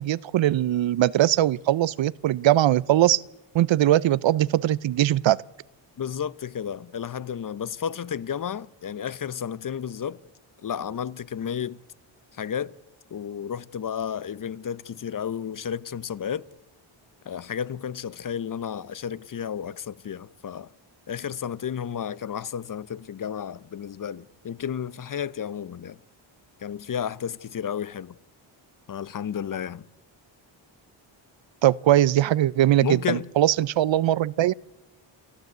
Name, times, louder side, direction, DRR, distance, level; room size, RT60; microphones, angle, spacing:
voice 1, 0.0-3.2 3.5-5.4 31.6-34.5, right 13 dB, 70° right, 0.6 m, -21 dB
voice 2, 6.0-10.2 10.6-11.8 12.3-12.8 13.1-16.5 17.3-20.7 21.1-26.0 26.6-28.1 28.9-29.8 32.8-33.3, left 8 dB, 45° left, 0.7 m, -32 dB
28.5 x 13.5 x 8.0 m
cardioid pair, 105°, 48 cm